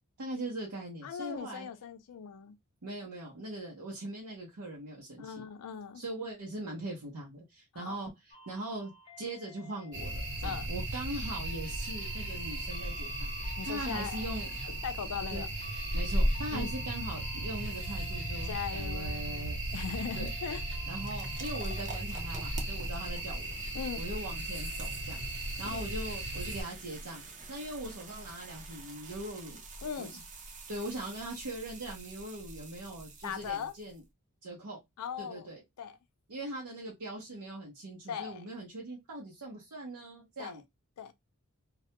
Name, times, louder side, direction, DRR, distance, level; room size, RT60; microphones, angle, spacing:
voice 1, 0.2-1.7 2.8-5.4 5.9-8.9 9.2-13.3 13.7-14.5 15.3-15.5 15.9-19.6 20.1-20.3 20.9-23.6 23.9-25.2 25.6-27.2 27.5-29.6 30.0-30.2 30.7-34.0 34.4-34.8 35.2-35.6 36.3-40.6, right 1 dB, 80° right, 0.7 m, -41 dB
voice 2, 1.0-2.6 5.2-6.0 7.7-8.0 10.4-10.7 13.6-14.3 14.6-15.5 16.5-16.7 18.5-20.6 23.7-24.0 25.6-25.8 29.8-30.2 33.2-33.7 35.0-35.5 35.8-36.0 38.1-38.4 40.4-40.6 41.0-41.1, left 7 dB, 90° left, 0.4 m, -39 dB
sound 1, 8.3-21.8, left 4 dB, 20° left, 0.6 m, -54 dB
sound 2, 9.9-26.6, right 1 dB, 55° right, 0.9 m, -35 dB
sound 3, 19.4-34.0, right 3 dB, 35° right, 0.5 m, -49 dB
2.3 x 2.1 x 2.8 m
head